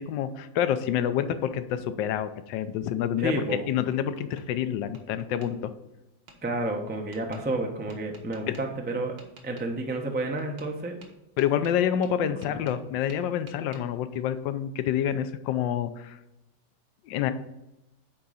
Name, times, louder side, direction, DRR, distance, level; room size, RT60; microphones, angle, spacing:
voice 1, 0.0-3.3 3.7-5.7 8.5-8.6 11.4-16.2 17.1-17.3, left 10 dB, 75° left, 11 dB, 1.3 m, -28 dB
voice 2, 3.2-3.7 6.4-9.1 9.4-11.0 12.2-12.6, right 2 dB, 15° right, 2 dB, 0.4 m, -30 dB
Tap, 3.4-4.5 4.9-5.5 6.3-6.4 7.1-7.4 7.9-8.6 9.2-9.7 10.4-10.7 11.0-12.8 13.1-13.8, right 4 dB, 65° right, 1.8 m, -52 dB
9.5 x 3.7 x 5.6 m, 0.92 s
omnidirectional pair, 2.1 m